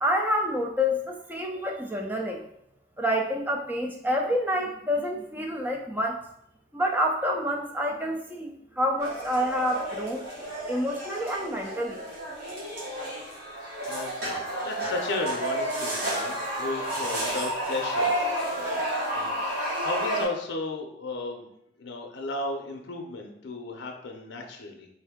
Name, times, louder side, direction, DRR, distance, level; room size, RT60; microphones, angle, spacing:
voice 1, 0.0-2.4 3.0-6.2 6.7-10.2 10.7-12.0, equal, 10° right, 2 dB, 0.3 m, -28 dB
sound 1, 9.0-20.2, right 1 dB, 60° right, 1.4 m, -31 dB
voice 2, 14.6-18.9 19.1-21.5 21.8-24.9, left 3 dB, 80° left, 3 dB, 0.5 m, -34 dB
3.3 x 2.6 x 3.5 m, 0.74 s
head